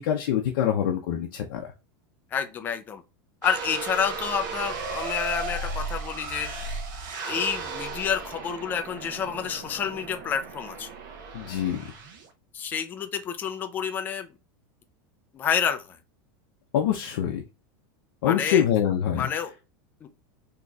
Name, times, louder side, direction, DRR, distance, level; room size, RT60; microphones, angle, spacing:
voice 1, 0.0-1.7 11.3-11.8 16.7-17.4 18.2-19.3, left 9 dB, 65° left, 0.6 m, -25 dB
voice 2, 2.3-3.0 3.4-6.5 7.2-10.9 12.5-14.3 15.3-16.0 18.3-18.6 19.2-19.5 20.0-20.1, left 7 dB, 15° left, 0.4 m, -29 dB
sound 1, 3.4-12.3, right 3 dB, 60° right, 0.9 m, -35 dB
4.0 x 2.9 x 2.3 m
supercardioid pair, 175°, 12 cm